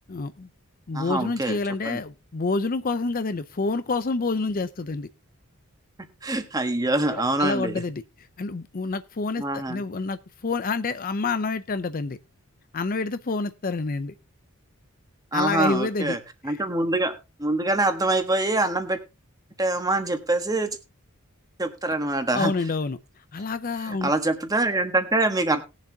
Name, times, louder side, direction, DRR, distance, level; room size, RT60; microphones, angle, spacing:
voice 1, 0.1-0.5 0.9-5.1 7.1-12.2 12.7-14.1 15.3-16.2 16.4-16.6 22.3-23.0 23.3-24.1, left 3 dB, 40° left, 0.5 m, -28 dB
voice 2, 0.9-1.6 1.8-2.0 6.2-7.8 9.4-9.8 15.3-16.2 16.4-17.1 17.4-19.0 19.6-20.8 21.6-22.5 23.9-25.6, right 2 dB, 15° right, 1.4 m, -24 dB
20.0 x 7.3 x 2.8 m
head